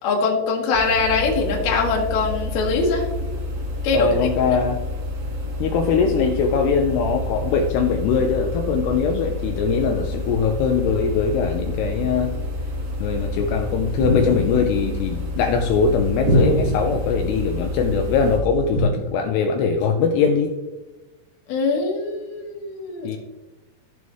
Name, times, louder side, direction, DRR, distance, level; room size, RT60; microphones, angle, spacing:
voice 1, 0.0-3.0 3.8-4.1 4.5-4.6 21.5-23.2, left 4 dB, 65° left, -1 dB, 3.1 m, -22 dB
sound 1, 0.7-18.4, left 1 dB, 60° right, 2.8 m, -29 dB
voice 2, 3.9-4.8 5.6-12.3 13.0-20.5 23.0-23.2, left 5 dB, 80° left, 3 dB, 2.4 m, -21 dB
sound 2, 14.0-14.7 16.2-17.0 18.7-18.9, equal, 35° right, 4.2 m, -22 dB
15.5 x 5.4 x 3.1 m, 1.1 s
omnidirectional pair, 5.5 m